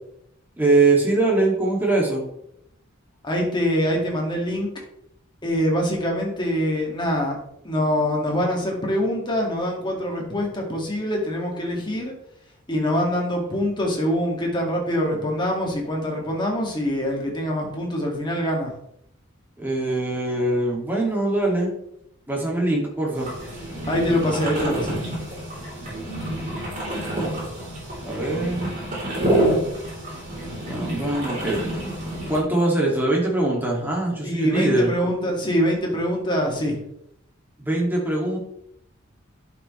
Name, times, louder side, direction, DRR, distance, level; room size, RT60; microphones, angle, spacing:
voice 1, 0.6-2.2 19.6-21.7 22.3-23.3 28.0-28.7 30.7-31.6 32.3-34.9 37.6-38.4, right 2 dB, 10° right, -3 dB, 2.3 m, -22 dB
voice 2, 3.2-4.7 5.4-7.4 7.6-12.1 12.7-18.7 23.9-25.0 34.2-36.8, equal, 20° left, -1 dB, 2.1 m, -24 dB
sound 1, 23.1-32.4, right 1 dB, 35° right, 3.6 m, -28 dB
10.5 x 6.1 x 3.2 m, 0.75 s
head